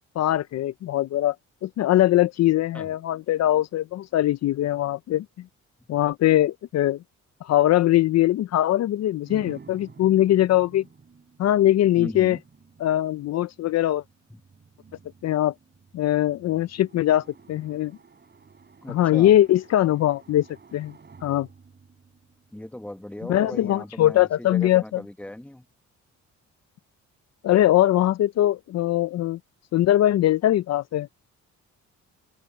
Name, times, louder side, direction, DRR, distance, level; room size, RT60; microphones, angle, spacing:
voice 1, 0.2-1.4 1.6-5.3 5.9-7.0 7.4-10.8 11.4-12.4 12.8-14.0 15.2-15.5 15.9-17.9 18.9-20.5 20.7-20.9 21.2-21.5 23.3-24.8 27.4-29.4 29.7-31.1, left 13 dB, 60° left, 0.5 m, -21 dB
sound 1, 9.2-23.1, right 5 dB, 35° right, 5.4 m, -51 dB
voice 2, 11.9-12.4 14.3-14.4 18.8-19.4 22.5-25.7, left 1 dB, 5° left, 1.5 m, -38 dB
open air
cardioid pair, 90°, 30 cm